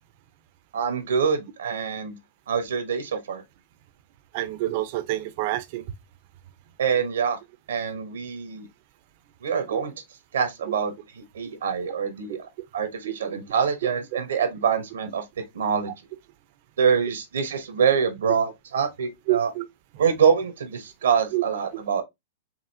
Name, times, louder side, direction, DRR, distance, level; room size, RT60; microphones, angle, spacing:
voice 1, 0.7-2.2 2.5-3.4 6.8-7.4 7.7-8.7 9.4-9.9 10.3-12.5 12.7-15.2 15.5-15.9 16.8-19.5 20.0-22.0, right 6 dB, 85° right, 1.1 m, -25 dB
voice 2, 4.3-5.8 9.7-9.8 13.0-13.1 19.3-19.7 21.3-21.4, right 16 dB, 55° right, 0.7 m, -27 dB
4.9 x 2.9 x 2.8 m
hypercardioid pair, 125°, 0 cm